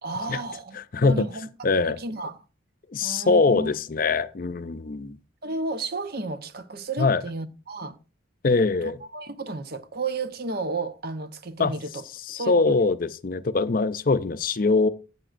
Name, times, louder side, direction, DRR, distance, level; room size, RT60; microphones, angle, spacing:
voice 1, 0.0-0.8 1.0-1.5 1.9-2.4 3.0-3.7 5.4-8.0 8.8-12.0 12.4-12.7, right 3 dB, 50° right, 0.8 m, -32 dB
voice 2, 0.7-1.3 1.6-2.0 2.9-5.2 7.0-7.2 8.4-9.0 11.6-11.7 12.3-14.9, left 3 dB, 45° left, 0.5 m, -22 dB
15.0 x 8.0 x 2.5 m
head